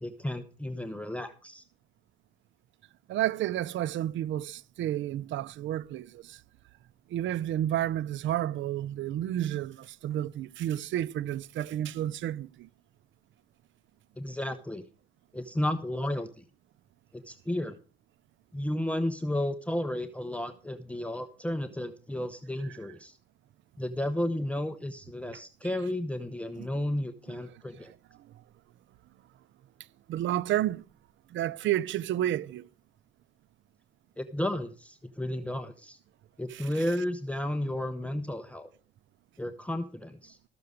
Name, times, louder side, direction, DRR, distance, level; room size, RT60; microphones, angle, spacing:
voice 1, 0.0-1.6 14.2-14.9 15.3-16.4 17.1-17.8 18.5-23.2 23.8-27.9 34.2-36.0 36.4-38.7 39.4-40.4, left 1 dB, 5° left, 0.8 m, -33 dB
voice 2, 3.1-6.4 7.1-12.7 27.5-27.6 30.1-30.8 31.3-32.7 36.5-36.7, right 12 dB, 70° right, 0.5 m, -31 dB
13.5 x 6.8 x 6.4 m
cardioid pair, 90°, 20 cm